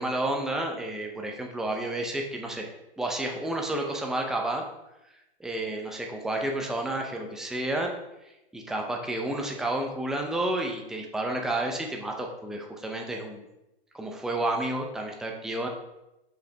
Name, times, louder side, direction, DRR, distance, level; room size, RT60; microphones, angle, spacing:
voice 1, 0.0-2.7 3.0-4.6 5.4-7.9 8.2-13.4 13.9-15.7, right 1 dB, ahead, 1 dB, 0.6 m, -31 dB
6.2 x 5.1 x 3.5 m, 0.92 s
hypercardioid pair, 125°, 33 cm